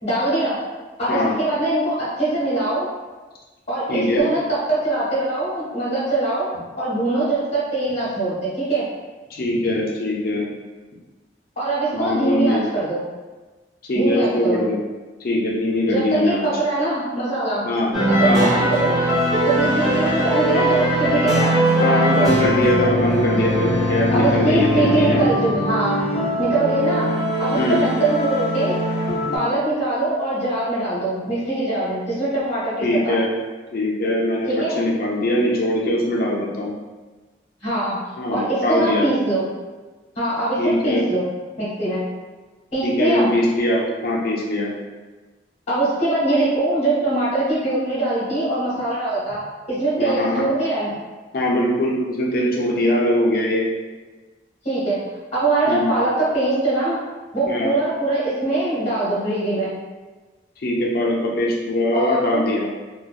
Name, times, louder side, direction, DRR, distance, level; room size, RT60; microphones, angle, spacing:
voice 1, 0.0-0.6 1.0-2.9 3.7-6.5 6.8-8.8 11.6-13.0 13.9-14.6 15.9-17.6 18.2-19.0 19.5-22.3 24.1-26.0 26.4-27.1 27.4-28.8 29.3-32.7 34.5-34.8 37.6-38.0 38.3-39.5 40.1-41.3 41.6-42.0 42.7-43.3 45.7-49.4 49.7-51.0 54.6-55.0 55.3-57.0 57.3-59.7 61.9-62.4, right 2 dB, 35° left, -7 dB, 0.9 m, -22 dB
voice 2, 3.9-4.3 9.3-10.5 11.9-12.6 13.9-14.8 15.2-16.4 17.6-17.9 18.2-18.5 21.8-25.2 27.5-27.8 32.8-33.3 33.7-36.7 38.2-39.1 40.6-41.0 42.8-44.7 50.0-50.5 51.3-53.7 55.7-55.9 57.5-57.7 60.6-62.7, left 1 dB, 50° left, -3 dB, 0.5 m, -21 dB
sound 1, 17.9-29.4, equal, ahead, 0.7 m, -21 dB
2.5 x 2.2 x 2.3 m, 1.3 s
head